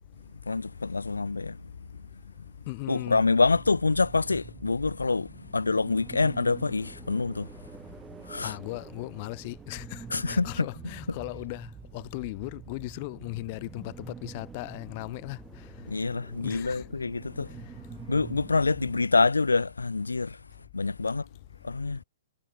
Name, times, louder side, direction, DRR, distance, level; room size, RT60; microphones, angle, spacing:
voice 1, 0.5-1.6 2.9-7.5 8.2-8.6 10.1-10.7 15.9-17.5 18.1-20.4 20.7-21.3 21.6-22.0, left 3 dB, 80° left, 0.3 m, -26 dB
voice 2, 2.7-3.3 8.4-11.7 11.9-15.4 16.4-16.8, left 25 dB, 40° left, 2.0 m, -37 dB
sound 1, 3.4-19.0, right 6 dB, 15° right, 2.8 m, -46 dB
figure-of-eight pair, 115°, 0 cm